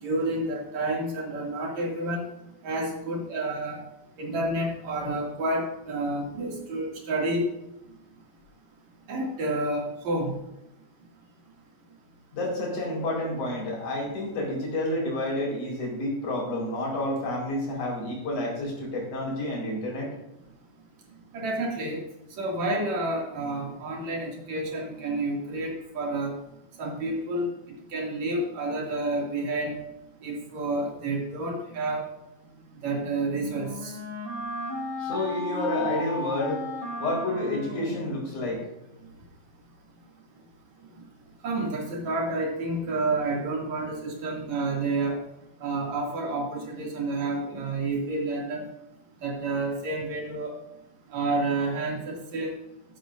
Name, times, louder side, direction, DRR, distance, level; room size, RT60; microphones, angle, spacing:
voice 1, 0.0-2.3 2.6-3.8 4.2-7.5 9.1-10.4 21.3-22.0 22.4-26.4 26.8-27.5 27.9-29.8 30.2-32.0 32.8-34.0 41.4-45.2 45.6-48.7 49.2-50.6 51.1-52.5, right 2 dB, 65° right, -1 dB, 3.8 m, -29 dB
voice 2, 12.3-20.1 35.0-36.6 37.0-38.6, left 1 dB, 80° left, -2 dB, 6.1 m, -29 dB
Wind instrument woodwind instrument, 32.9-38.7, left 1 dB, 45° right, 5.0 m, -35 dB
13.5 x 12.5 x 2.6 m, 0.90 s
omnidirectional pair, 3.5 m